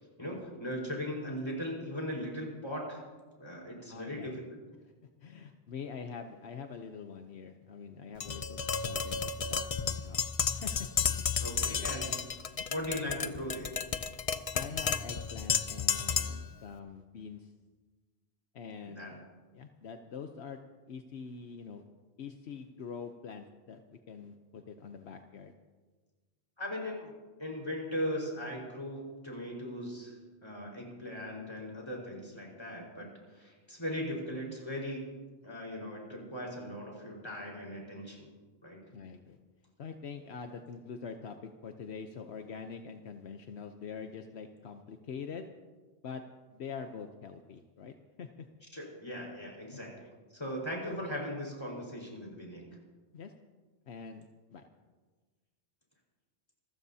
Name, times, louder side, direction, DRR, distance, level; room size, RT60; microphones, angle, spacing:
voice 1, 0.0-3.0 3.4-4.4 11.4-12.1 12.7-13.8 18.8-19.1 26.6-27.1 27.4-30.2 30.4-35.1 35.4-38.3 38.6-38.8 48.7-49.9 50.3-52.6, equal, 25° left, -2 dB, 4.7 m, -39 dB
voice 2, 3.9-4.4 5.2-10.2 10.5-10.9 12.6-12.7 14.5-17.5 18.5-19.2 19.5-20.6 20.9-21.8 22.2-25.5 38.9-39.4 39.8-45.5 46.0-46.2 46.5-48.3 49.7-49.8 50.9-51.0 53.1-53.3 53.9-54.6, left 6 dB, 75° left, 5 dB, 1.1 m, -44 dB
Tap, 8.2-16.5, left 6 dB, 40° left, 0.5 m, -32 dB
27.0 x 14.5 x 2.8 m, 1.3 s
omnidirectional pair, 1.1 m